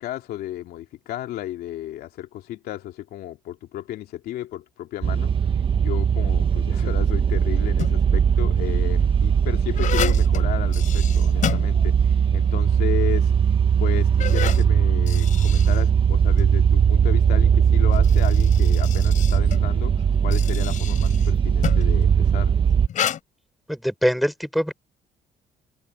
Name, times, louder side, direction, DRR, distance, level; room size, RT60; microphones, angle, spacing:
voice 1, 0.0-5.3 5.8-13.3 13.8-22.5, left 13 dB, 75° left, 2.8 m, -33 dB
sound 1, 5.0-22.9, right 7 dB, 35° right, 0.9 m, -19 dB
sound 2, 7.6-8.2 8.9-12.3 12.6-12.7 13.4-13.5 14.0-16.5 17.7-22.0 22.9-23.2, left 10 dB, 55° left, 5.0 m, -32 dB
voice 2, 23.7-24.7, equal, ahead, 4.6 m, -23 dB
cardioid pair, 130°, 16 cm